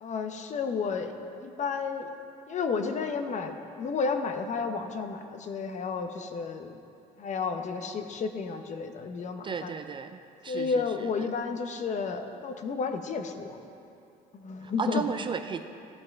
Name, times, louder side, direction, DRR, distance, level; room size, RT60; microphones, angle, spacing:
voice 1, 0.0-2.1 2.5-6.8 7.2-9.7 10.5-13.6 14.3-15.0, left 5 dB, 45° left, 7 dB, 0.7 m, -32 dB
voice 2, 9.4-11.3 14.6-15.6, right 6 dB, 30° right, 8 dB, 0.3 m, -35 dB
14.5 x 5.6 x 3.5 m, 2.6 s
cardioid pair, 110°, 17 cm